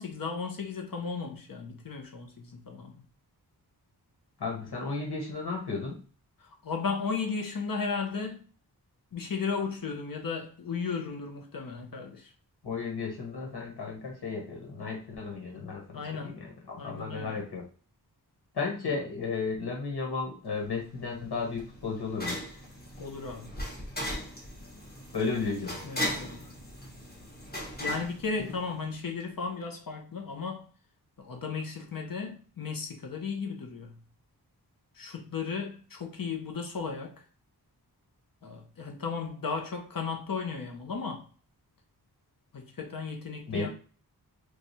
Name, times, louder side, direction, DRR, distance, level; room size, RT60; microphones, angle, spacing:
voice 1, 0.0-3.0 6.4-8.4 9.1-12.3 15.9-16.3 16.8-17.4 18.9-19.0 23.0-23.5 25.8-26.5 27.8-30.7 31.2-34.0 34.9-37.2 38.4-41.3 42.5-43.7, left 5 dB, 60° left, 0.8 m, -35 dB
voice 2, 4.4-6.0 12.6-17.6 18.5-22.4 25.1-25.8 43.5-43.7, left 4 dB, 90° left, 1.3 m, -34 dB
sound 1, 20.6-29.0, equal, 25° left, 1.2 m, -38 dB
3.2 x 2.4 x 4.1 m
wide cardioid pair, 115°, 38 cm